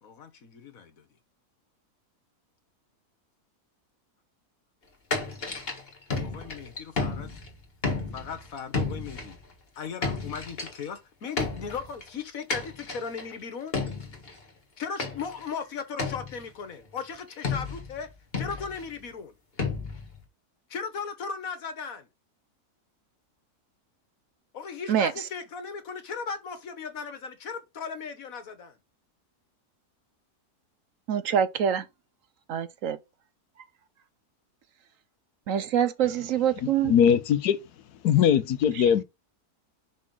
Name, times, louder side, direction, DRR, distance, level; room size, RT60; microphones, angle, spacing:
voice 1, 0.0-1.0 6.2-7.3 8.1-9.4 9.8-13.8 14.8-18.1 18.4-19.3 20.7-22.1 24.5-28.8, left 6 dB, 65° left, 1.6 m, -37 dB
sound 1, 5.1-7.5 7.8-9.3 9.8-10.9 11.4-12.1 12.5-13.3 13.7-14.4 15.0-15.5 16.0-16.4 17.4-18.0 18.3-18.9 19.6-20.2, left 4 dB, 40° left, 1.9 m, -32 dB
voice 2, 31.1-31.8 32.5-33.0 35.5-36.9, right 9 dB, 65° right, 1.0 m, -25 dB
voice 3, 36.6-37.6 37.9-39.0, left 8 dB, 85° left, 1.3 m, -21 dB
6.2 x 5.0 x 3.9 m
omnidirectional pair, 1.6 m